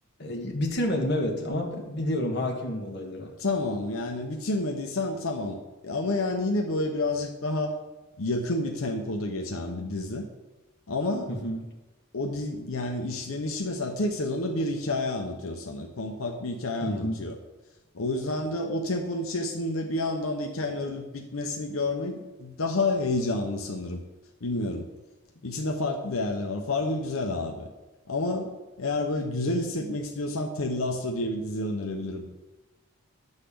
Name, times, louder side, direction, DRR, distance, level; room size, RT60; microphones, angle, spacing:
voice 1, 0.2-3.3 11.3-11.6 16.8-17.3, left 1 dB, 55° left, 1 dB, 1.4 m, -29 dB
voice 2, 3.4-5.6 5.8-7.7 8.2-10.2 10.9-11.3 12.1-17.4 17.9-24.0 24.4-24.8 25.4-27.7 28.1-32.3, left 2 dB, 90° left, 2 dB, 0.9 m, -29 dB
9.9 x 4.1 x 6.9 m, 1.1 s
head